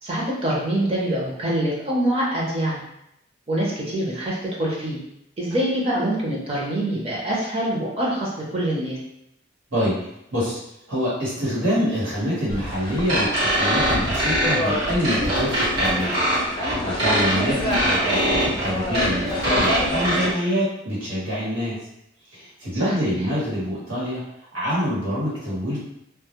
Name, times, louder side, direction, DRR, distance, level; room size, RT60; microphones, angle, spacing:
voice 1, 0.0-2.8 3.5-5.0 5.4-9.0 22.8-23.1, right 1 dB, 30° right, -5 dB, 0.6 m, -25 dB
voice 2, 10.9-16.2 16.5-21.8 22.3-24.2 24.5-25.8, equal, 90° right, -8 dB, 1.2 m, -26 dB
sound 1, 12.5-20.3, left 1 dB, 25° left, 0.5 m, -29 dB
sound 2, 13.1-20.3, equal, 55° right, 1.1 m, -23 dB
2.2 x 2.0 x 2.9 m, 0.81 s
head